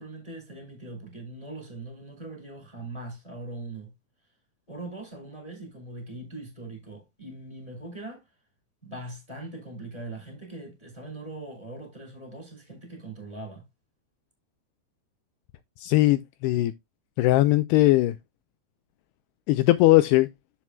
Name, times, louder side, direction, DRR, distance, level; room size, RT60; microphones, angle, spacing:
voice 1, 0.0-3.9 4.7-8.2 8.8-13.6, right 2 dB, 10° left, 3.8 m, -41 dB
voice 2, 15.8-16.7 17.2-18.2 19.5-20.3, left 17 dB, 80° left, 2.5 m, -20 dB
12.5 x 6.0 x 2.2 m
omnidirectional pair, 5.1 m